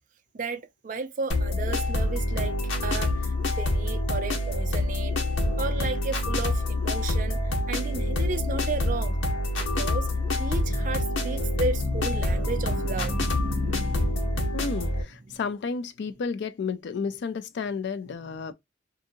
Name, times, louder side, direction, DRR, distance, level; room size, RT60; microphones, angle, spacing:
voice 1, 0.3-2.6 2.8-5.2 5.6-9.2 9.6-10.1 10.4-14.8 15.3-15.4, right 4 dB, 45° right, 0.4 m, -34 dB
sound 1, 1.3-15.0, left 1 dB, 80° left, 1.0 m, -26 dB
voice 2, 14.5-18.5, left 5 dB, 60° left, 0.4 m, -32 dB
2.7 x 2.6 x 2.5 m
head